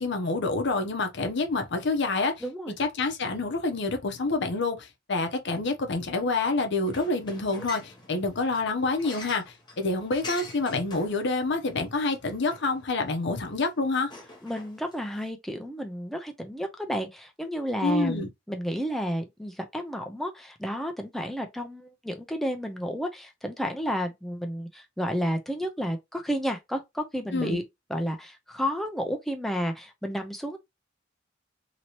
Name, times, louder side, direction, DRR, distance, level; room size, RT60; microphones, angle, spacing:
voice 1, 0.0-2.4 2.8-14.1 17.8-18.3 27.3-27.6, left 3 dB, 60° left, 0.7 m, -27 dB
voice 2, 2.4-2.7 14.4-27.6 27.9-30.6, equal, ahead, 0.6 m, -31 dB
sound 1, 6.8-15.3, left 2 dB, 25° left, 0.8 m, -46 dB
2.9 x 2.8 x 2.9 m
head